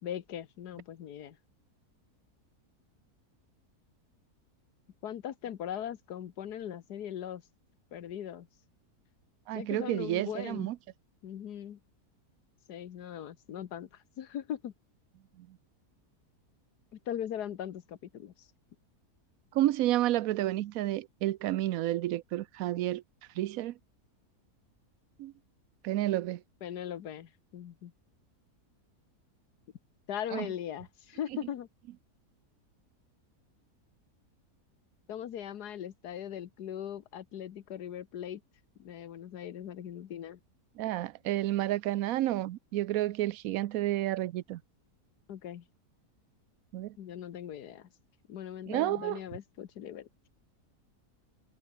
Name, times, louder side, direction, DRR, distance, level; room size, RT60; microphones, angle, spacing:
voice 1, 0.0-1.4 5.0-7.4 7.9-8.5 9.5-10.7 11.2-11.8 12.7-14.7 16.9-18.5 26.6-27.9 30.1-31.7 35.1-38.4 38.8-40.4 45.3-45.6 47.0-47.9 48.3-50.1, left 10 dB, 90° left, 1.6 m, -40 dB
voice 2, 9.5-10.8 15.4-15.5 19.5-23.0 23.4-23.7 25.2-25.3 25.8-26.4 30.3-30.5 40.8-44.6 46.7-46.9 48.7-49.2, right 14 dB, 70° right, 1.0 m, -30 dB
omnidirectional pair, 1.7 m